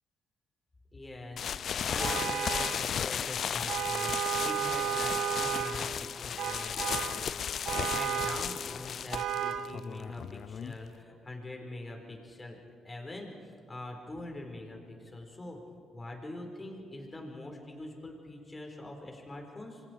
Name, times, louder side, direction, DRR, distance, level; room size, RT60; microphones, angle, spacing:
voice 1, 0.9-1.5 1.9-7.5 7.7-15.6 15.9-19.8, left 2 dB, 25° left, 2 dB, 5.1 m, -44 dB
sound 1, 1.4-11.0, left 8 dB, 60° left, 0.4 m, -35 dB
Vehicle horn car horn honking, 2.0-2.9 3.7-5.9 6.4-7.2 7.7-8.5 9.1-9.7, right 9 dB, 75° right, 1.2 m, -33 dB
28.5 x 24.0 x 4.8 m, 2.3 s
cardioid pair, 90°, 0 cm